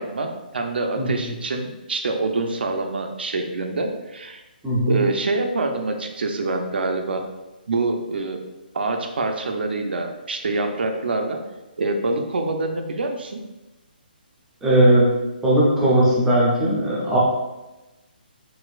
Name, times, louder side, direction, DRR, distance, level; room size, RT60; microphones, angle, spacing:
voice 1, 0.0-4.4 4.9-7.2 7.7-8.4 8.7-11.4 11.8-13.4, right 3 dB, 85° right, 4 dB, 0.5 m, -25 dB
voice 2, 4.6-5.0 14.6-15.1 15.4-17.2, right 1 dB, 5° right, -7 dB, 0.4 m, -18 dB
4.0 x 2.5 x 2.4 m, 1.0 s
hypercardioid pair, 175°, 5 cm